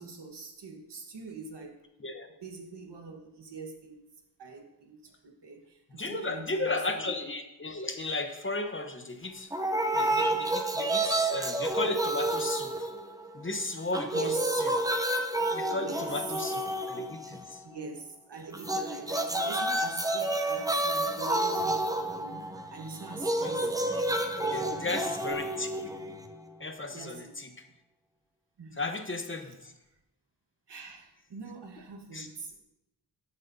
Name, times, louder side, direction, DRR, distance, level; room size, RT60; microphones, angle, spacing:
voice 1, 0.0-1.8 2.4-4.0 4.4-5.1 5.4-7.1 10.1-10.3 14.1-14.6 15.7-16.1 17.6-23.9 24.4-25.1 26.7-27.4 28.6-28.8 29.4-29.5 30.7-32.6, right 4 dB, 80° right, 2 dB, 1.4 m, -43 dB
voice 2, 6.0-9.5 10.0-12.9 13.3-14.7 15.5-17.6 23.4-23.7 24.5-25.7 26.6-27.5 28.8-29.7 32.1-32.3, left 2 dB, 30° left, 6 dB, 0.9 m, -35 dB
sound 1, 9.5-13.5 13.8-17.6 18.5-26.5, right 1 dB, 10° right, 0.7 m, -30 dB
12.5 x 7.3 x 2.7 m, 0.89 s
wide cardioid pair, 75°, 40 cm